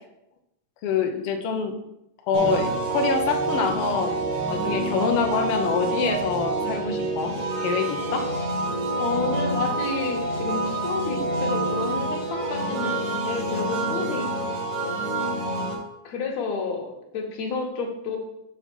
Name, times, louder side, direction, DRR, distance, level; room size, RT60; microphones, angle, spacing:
voice 1, 0.8-1.7 2.3-4.2 4.5-7.3 7.6-8.3 15.5-15.7, left 6 dB, 85° left, 4 dB, 1.3 m, -25 dB
sound 1, 2.3-15.8, right 2 dB, 90° right, 3.1 m, -27 dB
voice 2, 8.9-15.0 16.0-18.2, left 4 dB, 65° left, 1 dB, 2.3 m, -31 dB
6.9 x 5.9 x 4.4 m, 0.84 s
omnidirectional pair, 3.7 m